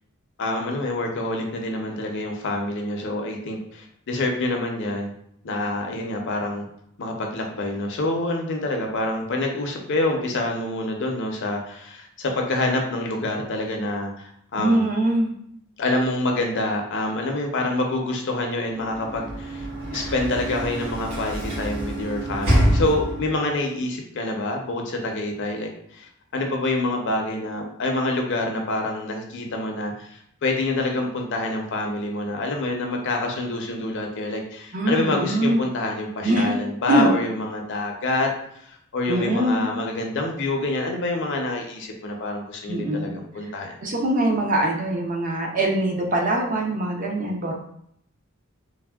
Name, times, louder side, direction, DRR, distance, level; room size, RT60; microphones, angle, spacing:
voice 1, 0.4-5.1 5.4-6.6 7.0-14.8 15.8-38.3 38.6-43.8, left 2 dB, 55° left, 2 dB, 0.5 m, -27 dB
voice 2, 14.6-15.3 34.7-35.6 36.2-36.5 36.9-37.1 39.1-39.6 42.7-43.1 43.8-47.5, right 1 dB, 40° right, 1 dB, 0.5 m, -22 dB
Sliding door / Slam, 18.8-23.5, right 1 dB, 70° right, 1.4 m, -26 dB
3.4 x 2.0 x 2.3 m, 0.72 s
head